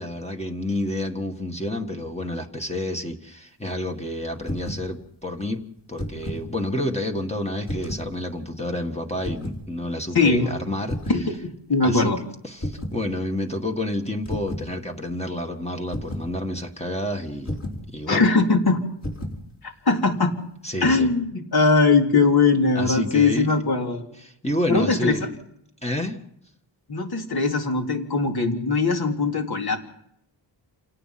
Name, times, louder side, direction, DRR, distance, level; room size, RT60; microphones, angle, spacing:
voice 1, 0.0-5.6 5.9-11.0 11.8-12.2 12.4-17.5 17.9-18.2 20.6-21.1 22.8-23.5 24.2-25.2 25.8-26.2, left 1 dB, 15° left, 3 dB, 1.8 m, -29 dB
sound 1, 4.4-4.9 5.8-6.5 7.6-8.1 9.2-9.6 10.9-11.3 12.6-13.0 14.3-14.7 15.9-16.3 17.5-17.9 19.0-19.4, left 1 dB, 35° left, 4.9 m, -31 dB
voice 2, 10.1-10.5 11.1-12.2 18.1-18.8 19.6-20.3 20.8-24.0 24.7-25.1 26.9-29.8, left 3 dB, 55° left, 2 dB, 3.4 m, -20 dB
28.5 x 18.0 x 6.0 m, 0.74 s
wide cardioid pair, 115°, 46 cm